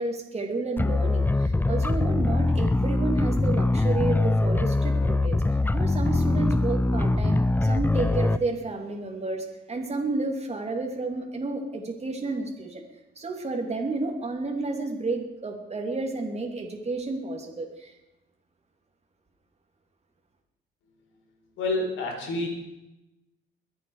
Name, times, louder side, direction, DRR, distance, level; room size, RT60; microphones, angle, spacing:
voice 1, 0.0-5.4 5.7-12.8 13.2-17.9, right 3 dB, 30° right, 2 dB, 2.9 m, -31 dB
sound 1, 0.8-8.4, left 2 dB, 10° left, 0.5 m, -23 dB
voice 2, 21.6-22.5, left 2 dB, 90° left, 2 dB, 4.1 m, -28 dB
23.0 x 8.6 x 4.9 m, 0.95 s
cardioid pair, 90°, 20 cm